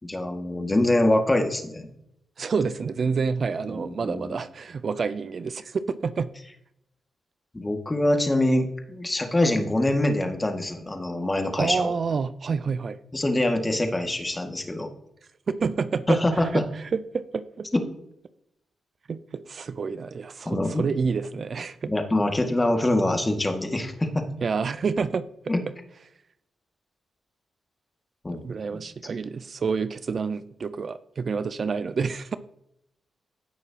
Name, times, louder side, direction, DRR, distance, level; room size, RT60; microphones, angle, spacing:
voice 1, 0.0-1.9 3.7-4.4 7.5-11.9 13.1-14.9 16.1-16.7 17.7-17.8 20.5-20.9 21.9-24.3 25.5-25.6 28.2-28.4 28.7-28.8, left 1 dB, 20° left, 4 dB, 2.0 m, -24 dB
voice 2, 2.4-6.3 11.6-13.0 15.5-17.7 19.1-21.9 24.4-25.5 28.4-32.4, right 5 dB, 55° right, 14 dB, 0.5 m, -28 dB
16.5 x 6.1 x 2.9 m, 0.77 s
cardioid pair, 60°, 0 cm